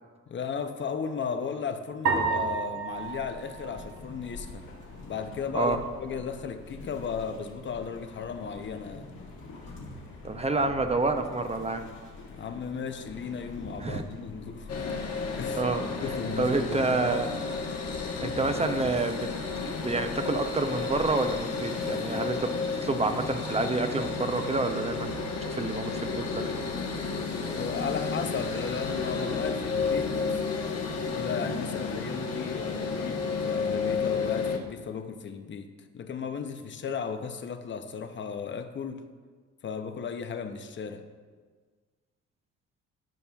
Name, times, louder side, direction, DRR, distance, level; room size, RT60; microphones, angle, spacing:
voice 1, 0.3-4.7 5.0-9.1 12.3-14.9 15.4-16.9 27.5-30.4 31.1-39.1 39.6-41.1, left 6 dB, 40° left, 8 dB, 0.7 m, -35 dB
sound 1, 2.1-4.5, right 4 dB, 85° right, 1.5 m, -31 dB
sound 2, 2.9-21.4, left 2 dB, 80° left, 2.1 m, -45 dB
voice 2, 10.2-11.8 13.8-14.0 15.6-15.8 16.4-17.4 18.2-19.3 19.6-26.6, right 3 dB, 20° right, 7 dB, 0.5 m, -28 dB
sound 3, 14.7-34.6, left 4 dB, 55° left, 1.1 m, -32 dB
14.5 x 5.5 x 2.4 m, 1.5 s
cardioid pair, 90°, 30 cm